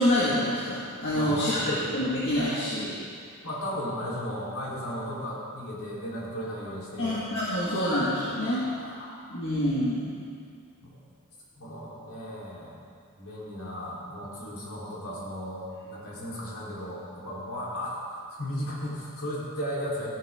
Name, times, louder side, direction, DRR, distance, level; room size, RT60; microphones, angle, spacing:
voice 1, 0.0-3.0 7.0-8.7 9.3-10.1, left 1 dB, 55° left, -8 dB, 1.8 m, -26 dB
voice 2, 1.1-1.8 3.4-7.2 8.3-9.3 10.8-11.0 11.6-12.8 13.2-20.1, equal, 70° left, -7 dB, 3.8 m, -36 dB
14.5 x 11.5 x 3.7 m, 2.3 s
head